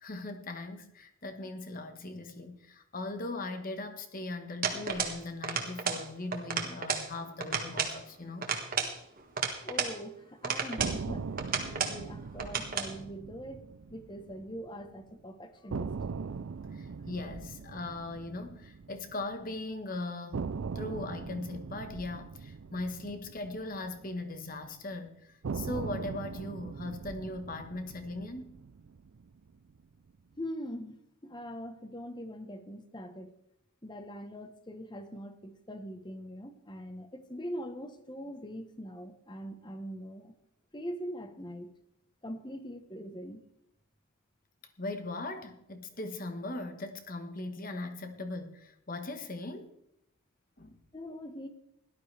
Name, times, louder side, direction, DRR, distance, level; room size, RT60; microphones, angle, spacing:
voice 1, 0.0-8.5 16.7-20.4 20.7-28.6 44.8-49.7 50.6-50.8, left 2 dB, 40° left, 7 dB, 1.4 m, -39 dB
sound 1, 4.6-5.2 5.4-6.0 6.3-7.1 7.4-8.0 8.4-10.0 10.4-11.0 11.4-12.0 12.4-12.9, right 6 dB, 40° right, 1.6 m, -32 dB
voice 2, 9.6-11.3 11.6-13.6 13.9-15.9 30.4-33.3 33.8-40.3 40.7-41.7 42.2-43.4 50.9-51.5, equal, 20° left, 8 dB, 1.1 m, -42 dB
sound 2, 10.8-14.9 15.1-15.2 15.7-19.8 20.3-24.7 25.4-29.8, right 5 dB, 65° right, 0.4 m, -41 dB
17.5 x 12.0 x 3.4 m, 0.76 s
head